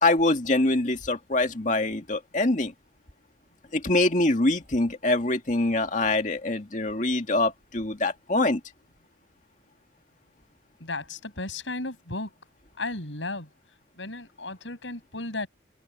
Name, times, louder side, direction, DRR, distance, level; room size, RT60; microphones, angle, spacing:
voice 1, 0.0-2.7 3.7-8.6, left 2 dB, 40° left, 2.2 m, -24 dB
voice 2, 10.8-12.4 12.8-13.5 14.0-15.5, left 2 dB, 80° left, 6.9 m, -34 dB
head